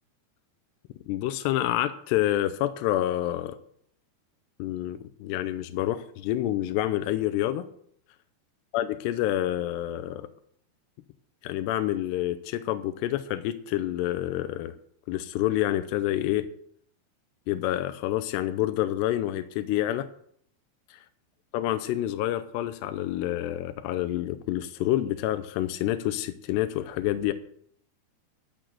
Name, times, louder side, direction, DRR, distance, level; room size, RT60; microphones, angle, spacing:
voice 1, 1.1-3.6 4.6-7.7 8.7-10.3 11.4-14.8 15.1-16.5 17.5-20.1 21.5-27.3, left 13 dB, 80° left, 10 dB, 2.7 m, -28 dB
13.0 x 6.3 x 7.7 m, 0.66 s
omnidirectional pair, 5.1 m